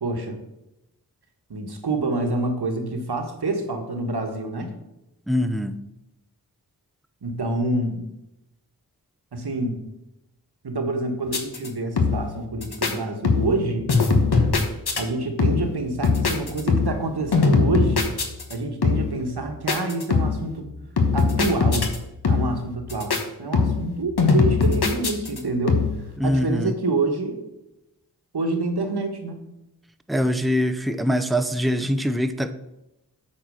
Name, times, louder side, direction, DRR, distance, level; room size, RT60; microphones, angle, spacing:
voice 1, 0.0-0.4 1.5-4.7 7.2-8.0 9.3-9.8 10.6-13.9 15.0-18.1 18.5-20.7 21.1-21.9 22.3-25.8 26.2-27.4 28.3-29.4, right 2 dB, 70° right, 5 dB, 1.4 m, -27 dB
voice 2, 5.3-5.8 26.2-26.7 30.1-32.5, equal, ahead, 9 dB, 0.5 m, -23 dB
sound 1, 11.3-11.7 12.0-12.4 12.6-12.9 13.2-13.6 13.9-15.0 15.4-15.8 16.0-17.1 17.3-18.5 18.8-19.2 19.7-20.5 21.0-22.0 22.2-22.6 22.9-23.2 23.5-23.9 24.2-25.4 25.7-26.1, left 4 dB, 70° left, 1.2 m, -21 dB
8.7 x 4.4 x 6.4 m, 0.92 s
wide cardioid pair, 55°, 40 cm